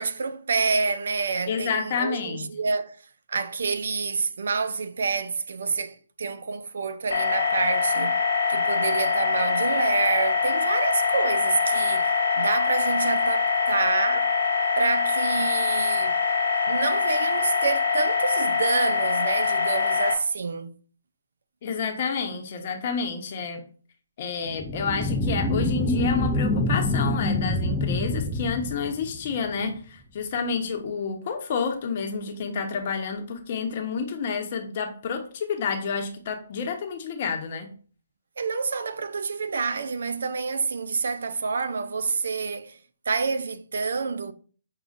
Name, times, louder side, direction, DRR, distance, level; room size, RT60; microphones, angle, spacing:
voice 1, 0.0-3.0 3.3-8.2 8.5-14.3 14.8-16.2 16.6-20.7 38.4-42.8 43.1-44.3, right 4 dB, 70° right, 0.4 m, -28 dB
voice 2, 1.5-2.5 21.6-23.6 24.2-37.7, left 5 dB, 45° left, 0.8 m, -29 dB
sound 1, 7.1-20.1, left 5 dB, 80° left, 1.2 m, -24 dB
sound 2, 24.5-29.5, left 2 dB, 5° left, 0.4 m, -26 dB
6.3 x 2.3 x 2.5 m
hypercardioid pair, 150°, 0 cm